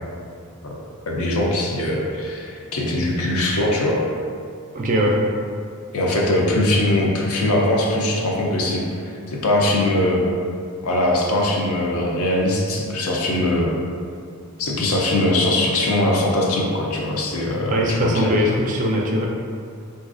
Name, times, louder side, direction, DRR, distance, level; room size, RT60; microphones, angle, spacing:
voice 1, 1.1-4.0 5.9-9.0 9.3-10.2 10.8-13.7 14.6-18.3, left 1 dB, 75° left, -2 dB, 0.5 m, -21 dB
voice 2, 4.7-5.2 17.7-19.3, equal, 35° right, -1 dB, 0.3 m, -20 dB
4.0 x 2.4 x 2.5 m, 2.3 s
head